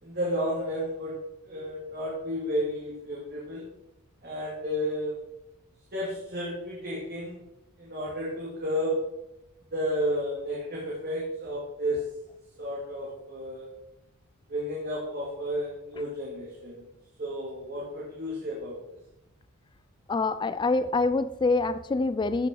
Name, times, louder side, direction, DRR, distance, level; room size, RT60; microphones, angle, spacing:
voice 1, 0.0-1.1 1.4-3.6 4.2-5.1 5.9-7.4 7.8-9.0 9.7-12.0 12.6-13.7 14.5-16.9 17.2-18.8, equal, 45° right, -5 dB, 2.3 m, -32 dB
voice 2, 20.1-22.5, left 3 dB, 20° left, 12 dB, 0.3 m, -25 dB
14.0 x 5.8 x 3.9 m, 0.91 s
head